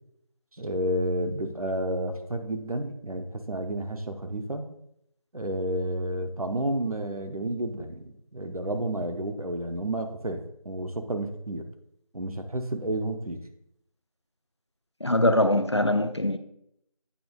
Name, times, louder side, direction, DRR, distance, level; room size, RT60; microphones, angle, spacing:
voice 1, 0.6-4.7 5.3-11.7 12.1-13.4, right 1 dB, 80° right, 0.9 m, -31 dB
voice 2, 15.0-16.4, left 1 dB, 50° left, 0.4 m, -22 dB
8.6 x 3.0 x 3.7 m
figure-of-eight pair, 175°, 18 cm